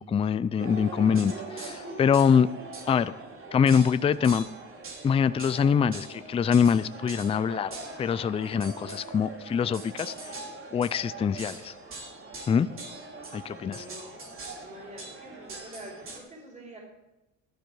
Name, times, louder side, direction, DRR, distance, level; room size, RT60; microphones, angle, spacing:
voice 1, 0.0-2.5 2.9-3.1 3.5-4.5 5.0-10.1 10.7-11.7 12.5-12.7 13.3-13.8, left 7 dB, 20° left, 15 dB, 0.4 m, -24 dB
sound 1, 0.6-16.2, right 2 dB, 40° right, 3.1 m, -42 dB
voice 2, 13.5-14.3 14.6-16.8, right 1 dB, 20° right, -2 dB, 4.7 m, -46 dB
12.0 x 11.5 x 4.8 m, 0.97 s
cardioid pair, 110°, 31 cm